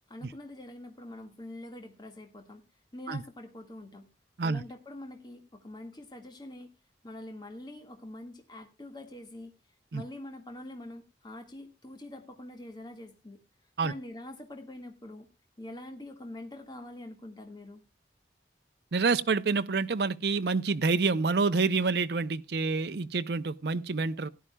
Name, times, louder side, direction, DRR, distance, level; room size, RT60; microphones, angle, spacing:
voice 1, 0.1-2.6 2.9-4.1 4.4-6.7 7.0-9.5 9.9-13.4 13.8-15.3 15.6-17.8, left 1 dB, 25° left, 1.7 m, -45 dB
voice 2, 18.9-24.3, right 4 dB, 65° right, 0.6 m, -27 dB
17.5 x 11.0 x 2.2 m
head